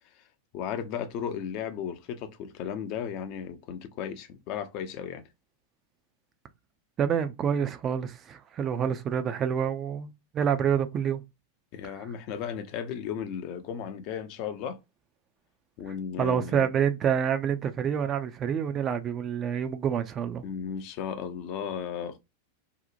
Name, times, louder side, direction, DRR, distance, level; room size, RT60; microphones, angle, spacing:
voice 1, 0.5-5.2 11.7-14.8 15.8-16.7 20.4-22.2, left 8 dB, 45° left, 0.4 m, -35 dB
voice 2, 7.0-11.2 11.8-11.9 16.2-20.4, right 8 dB, 30° right, 0.3 m, -27 dB
2.8 x 2.0 x 2.5 m
figure-of-eight pair, 90°, 0 cm